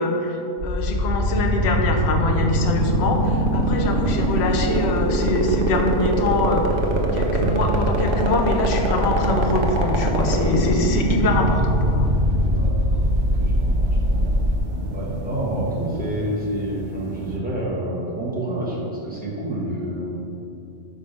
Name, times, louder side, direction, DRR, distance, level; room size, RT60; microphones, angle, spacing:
voice 1, 0.0-6.8 7.1-12.2, left 3 dB, 65° left, 3 dB, 0.9 m, -24 dB
sound 1, 0.6-14.6, equal, 75° right, 1.0 m, -21 dB
sound 2, 2.6-17.4, right 1 dB, 50° right, 0.7 m, -32 dB
voice 2, 12.5-14.4 14.9-20.2, right 1 dB, 5° right, -7 dB, 1.3 m, -29 dB
5.1 x 4.7 x 5.3 m, 2.7 s
omnidirectional pair, 1.2 m